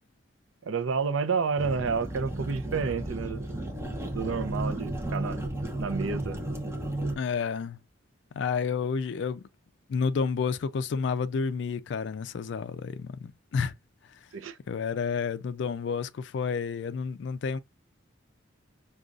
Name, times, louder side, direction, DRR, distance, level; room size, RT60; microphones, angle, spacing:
voice 1, 0.7-3.4 4.1-5.4 5.8-6.4 14.3-14.6, right 5 dB, 80° right, 0.5 m, -30 dB
sound 1, 1.6-7.1, right 1 dB, 15° right, 0.7 m, -33 dB
voice 2, 7.2-7.8 8.3-9.4 9.9-13.7 14.7-17.6, left 5 dB, 60° left, 0.3 m, -30 dB
5.1 x 2.3 x 2.4 m
head